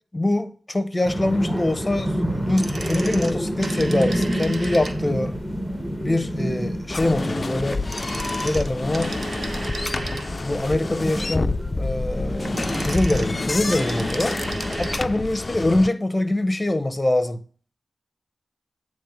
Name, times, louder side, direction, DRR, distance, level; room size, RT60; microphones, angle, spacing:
voice 1, 0.1-5.4 6.0-7.8 8.4-9.2 10.4-14.4 14.8-17.4, left 1 dB, 25° left, 0.8 m, -24 dB
sound 1, 1.0-15.1, equal, 5° right, 1.2 m, -29 dB
sound 2, 2.4-5.3 7.7-10.6 12.2-15.1 15.4-15.5, right 2 dB, 55° right, 0.9 m, -34 dB
sound 3, 6.9-15.9, left 3 dB, 45° left, 0.3 m, -28 dB
8.9 x 3.2 x 5.0 m
cardioid pair, 55°, 0 cm